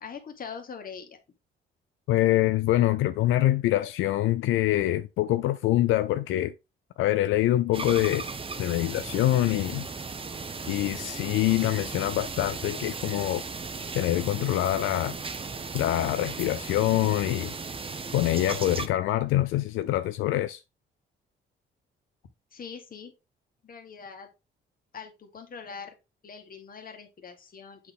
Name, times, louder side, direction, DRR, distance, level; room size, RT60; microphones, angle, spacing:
voice 1, 0.0-1.2 22.5-23.1 23.6-24.3 24.9-25.9 26.2-27.9, left 6 dB, 45° left, 2.0 m, -42 dB
voice 2, 2.1-6.5 7.0-8.2 8.6-9.9 10.7-13.4 13.9-15.2 15.7-17.5 18.1-20.6, left 14 dB, 90° left, 0.5 m, -25 dB
sound 1, 7.7-18.9, right 4 dB, 25° right, 0.9 m, -36 dB
7.8 x 4.2 x 3.6 m
cardioid pair, 90°, 20 cm